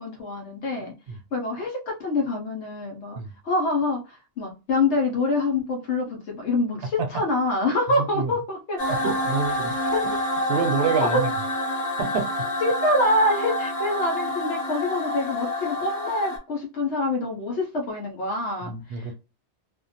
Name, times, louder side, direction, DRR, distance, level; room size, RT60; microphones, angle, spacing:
voice 1, 0.0-0.9 1.3-9.1 9.9-10.1 11.0-11.2 12.6-19.2, left 2 dB, 75° left, 1.0 m, -26 dB
voice 2, 8.0-8.3 8.9-9.8 10.5-11.3 12.0-12.3 18.6-19.2, right 5 dB, 65° right, 0.8 m, -27 dB
sound 1, 8.8-16.4, left 1 dB, 55° left, 1.2 m, -27 dB
2.5 x 2.1 x 2.6 m
omnidirectional pair, 1.2 m